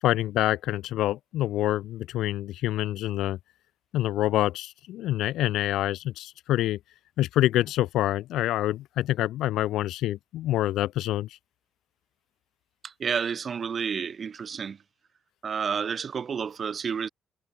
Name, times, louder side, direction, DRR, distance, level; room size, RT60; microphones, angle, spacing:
voice 1, 0.0-3.4 3.9-6.8 7.2-11.3, left 14 dB, 85° left, 7.1 m, -26 dB
voice 2, 12.8-14.8 15.4-17.1, right 6 dB, 45° right, 4.0 m, -30 dB
cardioid pair, 90°, 0 cm